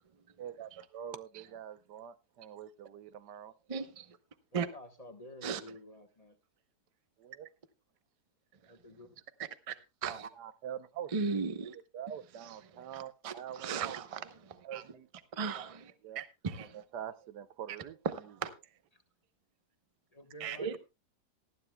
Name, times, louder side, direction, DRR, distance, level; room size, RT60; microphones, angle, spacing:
voice 1, 0.4-3.5 7.2-7.5 10.4-11.1 11.9-14.0 14.6-15.1 16.0-16.2 16.7-18.0, right 9 dB, 85° right, 1.4 m, -44 dB
voice 2, 3.7-4.1 4.5-4.7 5.4-5.6 9.7-9.8 10.0-10.3 11.1-11.8 12.4-12.5 12.9-14.8 15.3-16.8 18.1-18.5 20.4-20.8, right 5 dB, 30° right, 0.7 m, -37 dB
voice 3, 4.5-6.4 8.7-9.1 18.9-19.0 20.1-20.8, left 1 dB, 25° left, 1.2 m, -51 dB
19.0 x 12.5 x 2.3 m
omnidirectional pair, 1.7 m